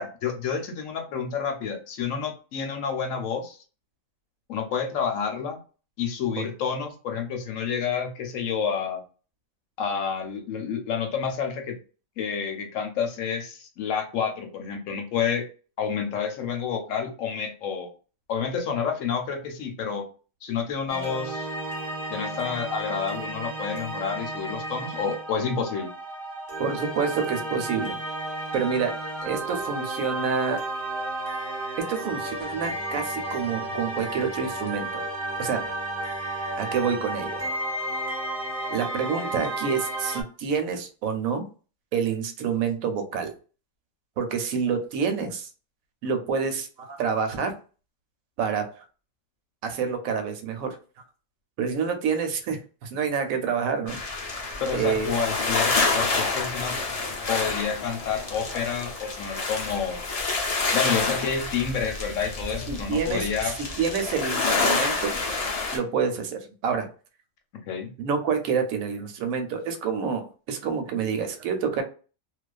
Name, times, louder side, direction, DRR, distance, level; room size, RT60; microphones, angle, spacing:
voice 1, 0.0-3.6 4.5-5.6 6.0-9.0 9.8-11.8 12.2-15.5 15.8-17.9 18.3-20.0 20.4-21.5 22.1-25.9 54.6-56.7 57.3-60.0 60.7-63.5 67.7-67.9, left 6 dB, 75° left, 5 dB, 0.9 m, -29 dB
sound 1, 20.9-40.2, right 1 dB, 45° right, 0.9 m, -32 dB
voice 2, 26.6-28.0 28.5-28.9 29.3-30.6 31.9-35.0 35.4-35.6 36.6-37.4 38.7-41.4 41.9-43.3 44.2-45.5 46.0-47.5 48.4-48.8 49.6-50.8 51.6-54.0 54.7-55.1 62.7-63.3 63.8-65.1 65.7-66.9 68.0-71.8, right 6 dB, 85° right, 7 dB, 1.0 m, -27 dB
sound 2, 53.9-65.8, left 3 dB, 55° left, 0.4 m, -28 dB
2.3 x 2.3 x 2.3 m, 0.36 s
omnidirectional pair, 1.4 m